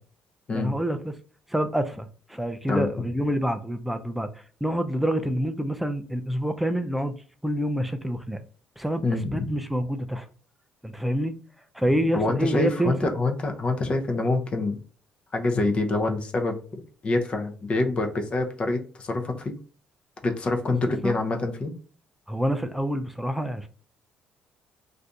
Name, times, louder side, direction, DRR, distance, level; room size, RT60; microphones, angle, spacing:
voice 1, 0.5-1.1 1.5-4.3 4.6-8.4 8.8-9.0 9.3-10.3 10.8-11.3 11.7-13.1 21.0-21.2 22.3-23.7, equal, 5° right, 0.4 m, -27 dB
voice 2, 9.0-9.5 12.1-14.8 15.3-16.6 17.0-19.5 20.2-21.7, left 2 dB, 35° left, 0.7 m, -26 dB
2.7 x 2.5 x 3.4 m
cardioid pair, 105°, 3 cm